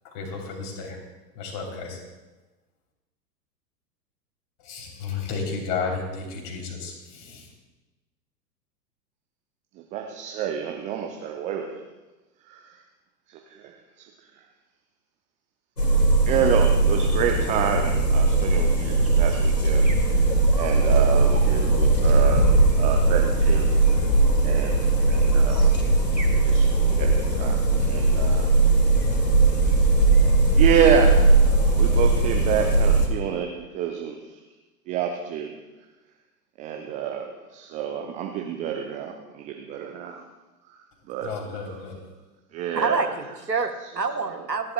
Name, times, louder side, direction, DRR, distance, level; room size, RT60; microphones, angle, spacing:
voice 1, 0.0-1.0 1.3-2.0 4.6-7.5 41.2-42.0, left 5 dB, 35° left, 1 dB, 3.3 m, -33 dB
voice 2, 9.9-11.8 12.5-12.8 13.3-13.7 14.0-14.1 16.3-20.2 20.6-22.5 22.8-24.1 24.4-25.7 26.3-28.5 30.5-34.4 34.9-35.6 36.6-40.2 40.7-40.8 41.1-41.8 42.5-43.1 44.2-44.4, right 8 dB, 15° right, 3 dB, 0.5 m, -28 dB
sound 1, 15.8-33.1, right 3 dB, 80° left, 2.3 m, -19 dB
voice 3, 42.7-44.7, right 4 dB, 85° right, 6 dB, 1.2 m, -27 dB
27.5 x 11.0 x 2.2 m, 1.1 s
figure-of-eight pair, 100°, 49 cm